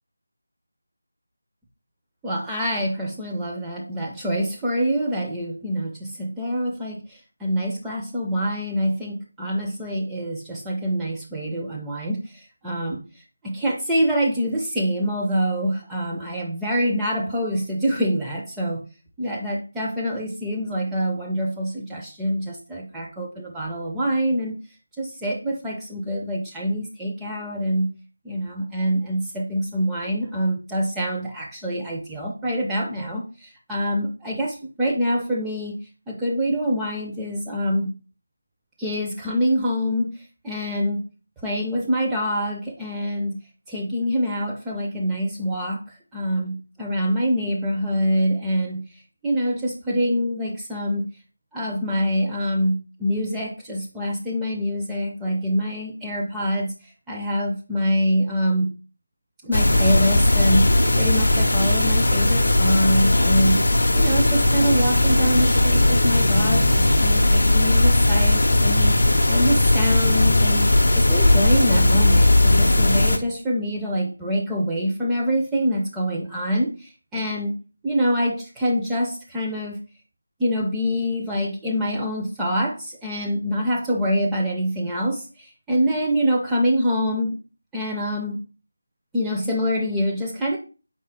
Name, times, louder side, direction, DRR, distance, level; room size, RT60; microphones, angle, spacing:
voice 1, 2.2-13.0 13.4-18.8 19.2-24.6 25.0-27.9 28.2-35.8 36.1-37.9 38.8-40.1 40.4-41.0 41.4-43.4 43.7-45.8 46.1-48.8 49.2-51.1 51.5-56.7 57.1-58.7 59.4-69.0 69.3-70.7 71.0-77.5 77.8-79.8 80.4-87.4 87.7-88.4 89.1-90.6, equal, 5° right, -4 dB, 0.4 m, -25 dB
sound 1, 59.5-73.2, left 1 dB, 55° left, 0.5 m, -18 dB
4.3 x 3.2 x 3.5 m, 0.33 s
figure-of-eight pair, 160°, 0 cm